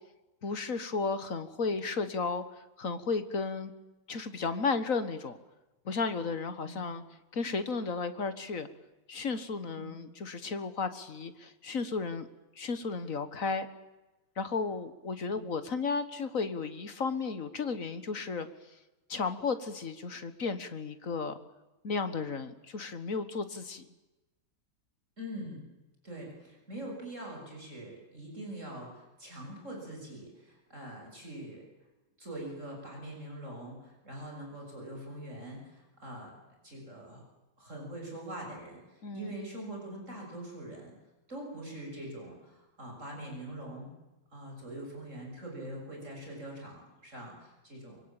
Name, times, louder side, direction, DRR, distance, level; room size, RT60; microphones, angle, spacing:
voice 1, 0.4-2.4 2.8-3.7 4.1-5.4 5.8-7.0 7.3-8.7 9.1-12.3 12.6-13.7 14.4-18.5 19.1-21.4 21.8-23.8 39.0-39.3, left 4 dB, 40° left, 11 dB, 1.7 m, -33 dB
voice 2, 25.2-25.6 26.0-31.6 32.2-36.4 36.6-37.2 37.6-40.9 41.3-43.9 44.3-48.1, right 1 dB, 35° right, 0 dB, 7.4 m, -43 dB
25.0 x 23.5 x 9.0 m, 1.0 s
omnidirectional pair, 2.4 m